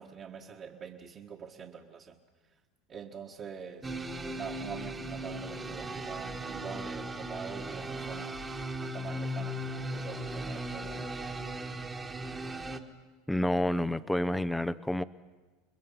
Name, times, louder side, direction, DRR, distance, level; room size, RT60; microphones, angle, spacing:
voice 1, 0.0-2.2 2.9-3.9 4.4-8.4 8.8-11.1, right 7 dB, 40° right, -3 dB, 1.7 m, -44 dB
sound 1, 3.8-12.8, right 1 dB, 15° right, 1.5 m, -37 dB
voice 2, 13.3-15.0, left 1 dB, 5° left, 15 dB, 0.7 m, -29 dB
30.0 x 21.0 x 5.7 m, 1.3 s
supercardioid pair, 125°, 0 cm